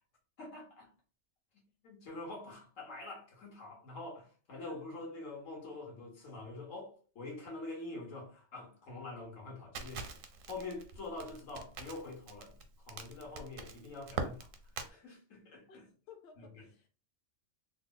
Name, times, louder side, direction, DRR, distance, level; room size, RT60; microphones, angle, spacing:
voice 1, 0.4-0.9 1.8-10.1 10.5-12.6 12.8-14.5 14.9-15.8, left 2 dB, 90° left, 1.6 m, -45 dB
Crackle, 9.7-14.9, right 5 dB, 85° right, 1.0 m, -43 dB
voice 2, 15.7-16.9, left 6 dB, 45° left, 0.8 m, -57 dB
3.2 x 2.1 x 3.8 m
omnidirectional pair, 1.3 m